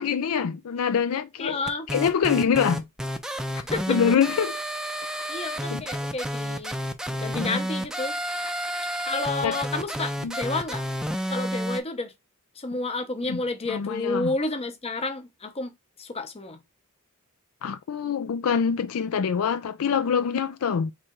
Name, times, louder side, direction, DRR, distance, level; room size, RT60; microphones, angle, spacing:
voice 1, 0.0-1.6 1.9-2.8 3.9-4.5 5.7-5.8 7.3-7.6 9.4-9.5 10.2-10.4 13.2-13.4 13.7-14.3 17.6-20.9, left 7 dB, 75° left, 0.4 m, -25 dB
voice 2, 1.4-1.9 3.7-4.0 5.3-6.8 7.1-8.2 9.1-10.8 11.3-12.1 12.6-15.7 16.0-16.6, left 3 dB, 30° left, 0.7 m, -30 dB
sound 1, 1.7-11.8, equal, 5° right, 0.4 m, -30 dB
3.6 x 3.2 x 4.4 m
head